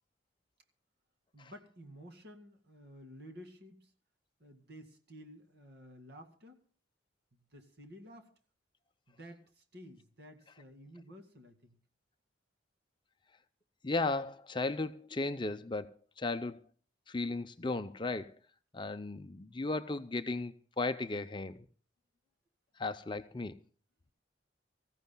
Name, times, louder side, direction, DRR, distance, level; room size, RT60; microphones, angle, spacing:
voice 1, 1.3-3.9 4.4-6.6 7.5-8.3 9.1-11.8, equal, 60° right, 2.1 m, -53 dB
voice 2, 13.8-16.6 17.1-18.3 18.7-21.7 22.8-23.6, left 3 dB, 25° left, 0.5 m, -35 dB
25.0 x 15.0 x 2.2 m
head